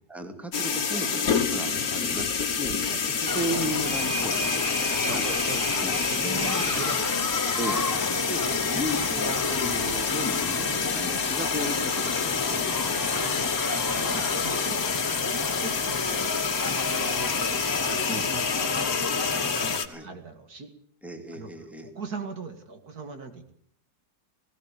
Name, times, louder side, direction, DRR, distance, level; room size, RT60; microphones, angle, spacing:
voice 1, 0.1-2.7 3.0-5.2 5.5-6.7 7.6-8.0 8.3-8.4 8.7-13.3 13.9-14.1 18.1-18.3 19.9-20.1 21.0-21.9, equal, ahead, 5 dB, 2.6 m, -35 dB
sound 1, 0.5-19.9, left 6 dB, 65° left, 1.9 m, -28 dB
sound 2, 3.3-19.8, left 3 dB, 25° left, 0.5 m, -32 dB
sound 3, 3.6-14.9, right 2 dB, 35° right, 3.3 m, -40 dB
voice 2, 5.0-5.6 6.1-7.3 7.7-7.8 8.1-8.3 12.7-12.8 13.4-13.5 14.0-16.6 16.9-17.4 17.8-20.7 21.3-21.5 21.8-23.5, right 4 dB, 70° right, 7 dB, 2.6 m, -40 dB
18.5 x 18.0 x 8.4 m, 0.63 s
omnidirectional pair, 1.7 m